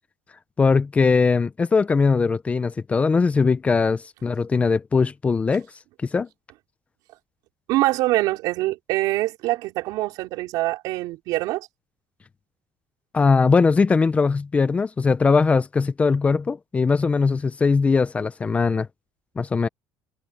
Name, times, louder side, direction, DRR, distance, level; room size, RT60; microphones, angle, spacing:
voice 1, 0.6-5.7 6.1-6.3 13.1-18.9 19.4-19.7, left 4 dB, 20° left, 0.8 m, -20 dB
voice 2, 7.7-11.7, right 18 dB, 70° right, 5.0 m, -24 dB
cardioid pair, 130°, 7 cm